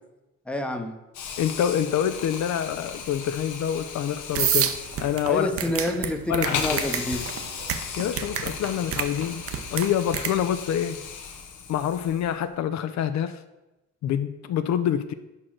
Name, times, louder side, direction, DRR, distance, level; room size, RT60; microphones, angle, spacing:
voice 1, 0.5-0.9 5.3-7.2, left 1 dB, 5° left, 5 dB, 0.7 m, -28 dB
Hiss, 1.1-12.4, left 6 dB, 80° left, 0.9 m, -36 dB
voice 2, 1.4-4.7 5.0-5.5 6.3-6.8 8.0-9.4 9.7-11.0 11.7-13.4 14.0-15.1, left 9 dB, 65° left, 11 dB, 0.4 m, -26 dB
sound 1, 4.3-10.3, right 8 dB, 50° right, 0.6 m, -29 dB
4.9 x 4.3 x 5.9 m, 1.0 s
cardioid pair, 90°, 30 cm